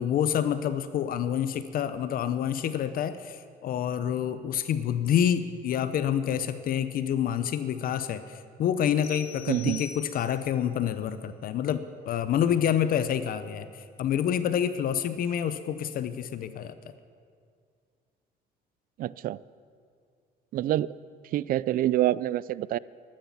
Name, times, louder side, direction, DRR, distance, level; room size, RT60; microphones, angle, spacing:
voice 1, 0.0-16.8, left 9 dB, 60° left, 12 dB, 0.7 m, -28 dB
sound 1, 9.0-10.5, left 7 dB, 85° left, 2.8 m, -44 dB
voice 2, 9.5-9.8 19.0-19.4 20.5-21.0 21.3-22.8, right 14 dB, 60° right, 20 dB, 0.4 m, -26 dB
13.0 x 13.0 x 7.2 m, 2.2 s
cardioid pair, 110°, 17 cm